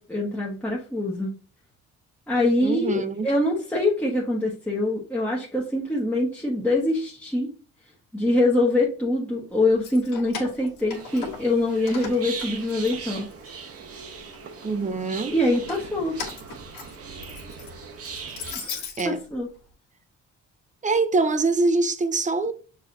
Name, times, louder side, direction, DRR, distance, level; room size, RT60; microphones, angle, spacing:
voice 1, 0.0-1.4 2.3-7.5 8.1-13.3 15.3-16.2 18.5-19.5, left 2 dB, 5° left, 1.1 m, -24 dB
voice 2, 2.6-3.3 14.6-15.3 19.0-19.2 20.8-22.5, right 3 dB, 25° right, 0.6 m, -24 dB
Keys jangling, 9.7-11.6 11.9-13.5 13.9-14.6 15.4-19.1, left 5 dB, 85° left, 1.7 m, -38 dB
sound 1, 10.9-18.5, right 5 dB, 50° right, 0.9 m, -39 dB
6.2 x 3.2 x 2.6 m
cardioid pair, 90°, 30 cm